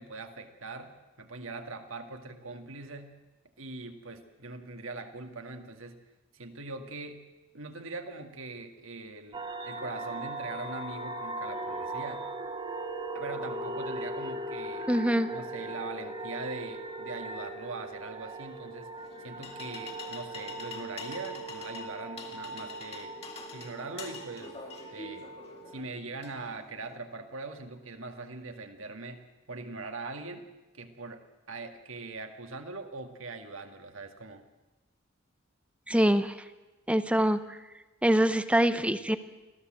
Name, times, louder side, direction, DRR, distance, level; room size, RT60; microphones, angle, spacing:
voice 1, 0.0-3.1 3.6-6.0 6.3-7.2 7.5-12.2 13.1-14.9 15.3-23.2 23.5-24.6 24.9-25.3 25.7-29.2 29.5-30.4 30.7-34.4, right 3 dB, 70° right, 6 dB, 2.1 m, -42 dB
sound 1, 9.3-25.8, right 2 dB, 25° right, 1.9 m, -39 dB
voice 2, 14.9-15.3 35.9-36.4 36.9-37.4 38.0-39.2, right 1 dB, 5° right, 11 dB, 0.8 m, -24 dB
sound 2, 19.0-27.0, left 4 dB, 30° left, 2.6 m, -46 dB
25.5 x 15.5 x 7.8 m, 1.1 s
head